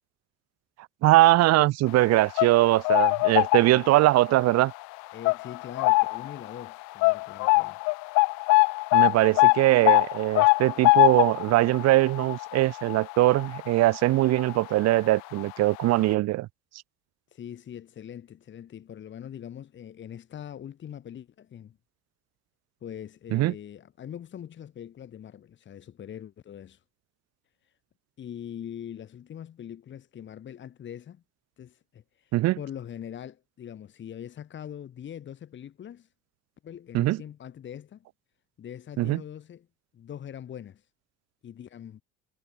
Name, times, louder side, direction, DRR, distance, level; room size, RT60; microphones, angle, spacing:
voice 1, 1.0-4.7 8.9-16.5 23.3-23.5 32.3-32.6 36.9-37.2 39.0-39.2, right 17 dB, 60° right, 1.2 m, -21 dB
sound 1, 2.1-4.1 4.5-4.7 5.2-6.3 6.6-6.7 7.0-14.0 14.3-14.5 15.4-15.5 15.8-15.9, left 29 dB, 75° left, 0.5 m, -22 dB
voice 2, 3.5-3.9 5.1-7.8 17.3-21.8 22.8-26.8 28.2-31.2 31.6-36.1 36.6-38.0 38.6-39.7 39.9-40.8 41.4-42.0, left 9 dB, 40° left, 2.8 m, -42 dB
cardioid pair, 130°, 30 cm